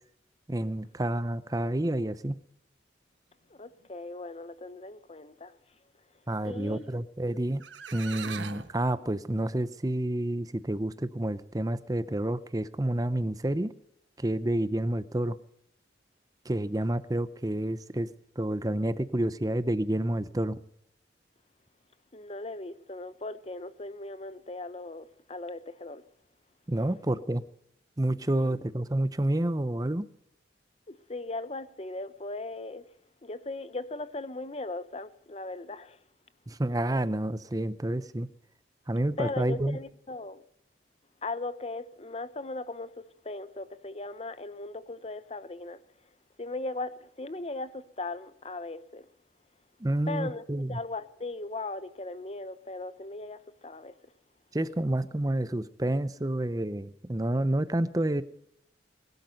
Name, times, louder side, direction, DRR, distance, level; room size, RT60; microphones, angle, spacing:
voice 1, 0.5-2.4 6.3-7.6 7.9-13.7 14.2-15.4 16.4-18.1 18.4-20.6 26.7-27.4 28.0-30.1 36.5-38.3 38.9-39.8 49.8-50.8 54.5-58.2, right 1 dB, 20° right, 0.7 m, -29 dB
voice 2, 3.5-5.6 6.4-7.0 22.1-26.0 28.4-28.6 30.9-32.9 33.2-36.0 39.2-40.4 41.2-46.1 46.4-49.1 50.1-53.9, left 2 dB, 35° left, 0.8 m, -38 dB
sound 1, 7.3-7.4 7.6-8.7, right 6 dB, 90° right, 1.2 m, -40 dB
21.0 x 12.0 x 5.3 m
head